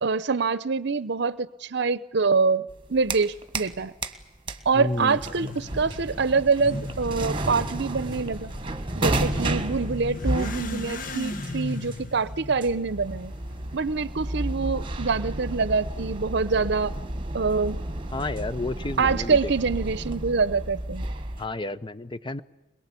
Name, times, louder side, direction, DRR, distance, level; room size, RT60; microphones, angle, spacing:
voice 1, 0.0-3.9 4.7-8.5 9.0-13.3 13.7-17.0 17.3-17.8 19.0-21.1, right 4 dB, 65° right, 0.7 m, -25 dB
sound 1, 2.7-3.8 4.0-21.5, right 1 dB, 30° right, 1.5 m, -32 dB
voice 2, 4.7-5.2 18.1-19.5 21.4-22.4, left 2 dB, 25° left, 0.8 m, -31 dB
Motorcycle / Accelerating revving vroom, 4.9-13.8, left 2 dB, 45° left, 1.6 m, -37 dB
22.5 x 22.0 x 8.4 m
head